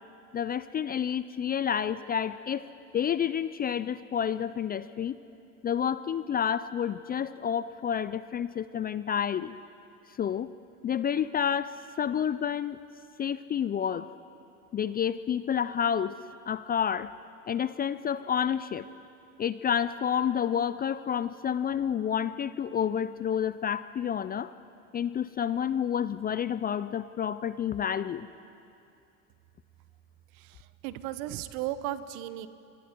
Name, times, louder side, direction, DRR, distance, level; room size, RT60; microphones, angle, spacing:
voice 1, 0.3-2.7 2.9-5.1 5.6-9.5 10.2-10.5 10.8-12.8 13.2-14.1 14.7-16.2 16.5-17.1 17.5-18.9 19.4-24.5 24.9-28.3, left 8 dB, 20° left, 15 dB, 0.5 m, -29 dB
voice 2, 30.3-32.5, right 13 dB, 60° right, 14 dB, 1.2 m, -36 dB
27.0 x 24.0 x 4.6 m, 2.6 s
hypercardioid pair, 85°, 43 cm